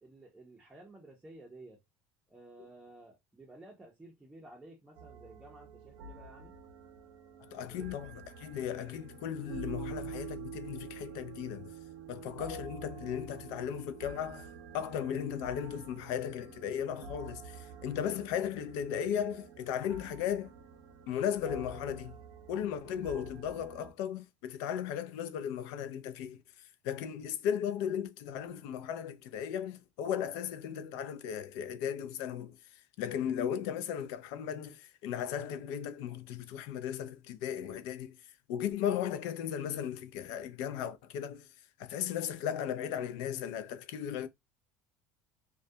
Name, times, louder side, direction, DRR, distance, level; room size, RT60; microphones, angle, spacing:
voice 1, 0.0-1.8 2.3-6.6 7.7-7.9, right 2 dB, 10° right, 0.5 m, -53 dB
sound 1, 4.9-23.9, right 5 dB, 70° right, 0.5 m, -48 dB
voice 2, 7.4-11.7 12.1-14.5 14.7-20.5 21.1-22.2 22.5-44.3, left 9 dB, 75° left, 0.4 m, -36 dB
2.3 x 2.1 x 2.6 m
cardioid pair, 145°, 7 cm